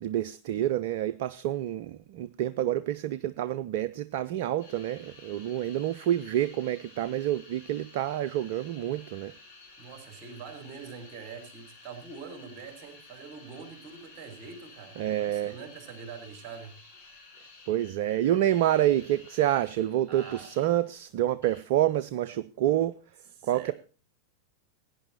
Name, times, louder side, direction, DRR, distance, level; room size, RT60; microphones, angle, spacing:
voice 1, 0.0-9.3 15.0-15.5 17.7-23.0 23.4-23.7, right 12 dB, 50° right, 0.5 m, -28 dB
sound 1, 4.6-20.9 21.4-21.6, left 3 dB, 65° left, 7.2 m, -53 dB
voice 2, 9.8-16.7 20.1-20.5 23.4-23.7, right 5 dB, 30° right, 3.9 m, -44 dB
17.0 x 9.7 x 4.2 m
figure-of-eight pair, 90°, 0 cm